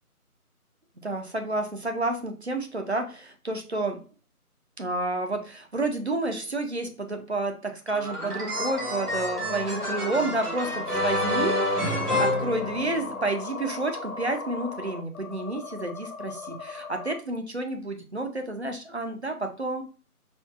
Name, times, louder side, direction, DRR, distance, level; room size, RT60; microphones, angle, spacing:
voice 1, 1.0-4.0 4.8-19.8, right 2 dB, 50° right, 5 dB, 0.5 m, -30 dB
sound 1, 7.9-13.3, left 1 dB, 90° right, 1.6 m, -29 dB
sound 2, 8.6-17.2, left 4 dB, 65° left, 0.7 m, -37 dB
4.3 x 2.2 x 2.3 m, 0.37 s
figure-of-eight pair, 165°, 45 cm